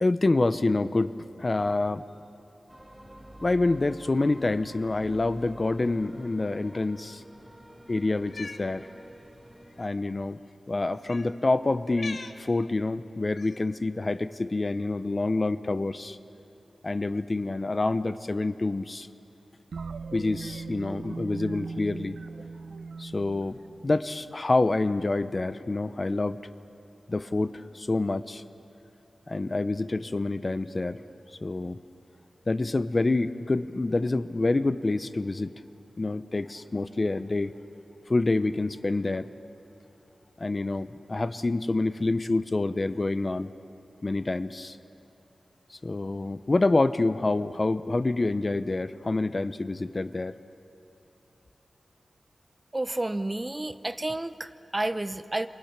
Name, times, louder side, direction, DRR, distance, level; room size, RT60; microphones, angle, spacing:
voice 1, 0.0-2.0 3.4-7.2 7.9-8.9 9.8-10.4 10.7-16.2 16.8-19.1 20.1-22.2 23.0-26.4 27.1-28.4 29.3-31.0 31.4-31.8 32.5-35.5 36.0-37.5 38.1-39.3 40.4-43.5 44.0-44.8 45.7-50.3, left 2 dB, 35° left, 13 dB, 0.7 m, -27 dB
sound 1, 2.7-9.9, equal, 5° right, 1.5 m, -49 dB
Cat, 8.2-8.6 9.7-9.9 11.0-11.3 11.9-12.4 13.4-13.7, left 4 dB, 60° left, 1.1 m, -41 dB
sound 2, 19.7-24.4, right 4 dB, 90° right, 0.7 m, -39 dB
voice 2, 52.7-55.5, right 2 dB, 25° right, 11 dB, 0.8 m, -30 dB
28.0 x 27.5 x 6.0 m, 2.8 s
wide cardioid pair, 85°, 0 cm